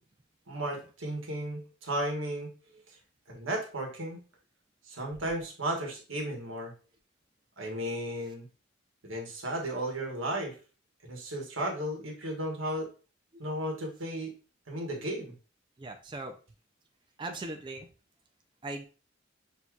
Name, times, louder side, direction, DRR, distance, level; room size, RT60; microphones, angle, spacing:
voice 1, 0.5-2.5 2.9-3.0 3.3-4.2 4.8-6.7 7.6-8.5 9.0-10.6 11.1-12.9 13.4-14.3 14.7-15.3, right 1 dB, 90° right, 1 dB, 1.3 m, -34 dB
voice 2, 15.8-16.3 17.2-17.9 18.6-18.9, right 2 dB, 25° right, 5 dB, 0.4 m, -39 dB
6.2 x 2.8 x 2.4 m, 0.36 s
head